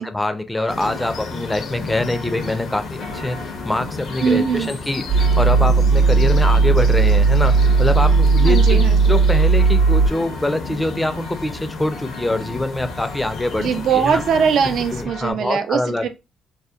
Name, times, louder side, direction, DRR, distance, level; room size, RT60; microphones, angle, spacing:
voice 1, 0.0-8.8 9.1-13.7 13.9-14.2 14.9-16.1, left 1 dB, 10° left, 0.4 m, -24 dB
sound 1, 0.5-15.3, left 3 dB, 85° left, 0.8 m, -39 dB
sound 2, 0.7-15.0, left 4 dB, 65° left, 0.6 m, -33 dB
voice 2, 4.2-4.7 8.4-9.0 13.6-16.1, right 7 dB, 70° right, 0.4 m, -20 dB
sound 3, 5.1-10.1, right 4 dB, 35° right, 0.7 m, -15 dB
2.7 x 2.1 x 2.3 m
cardioid pair, 90°, 0 cm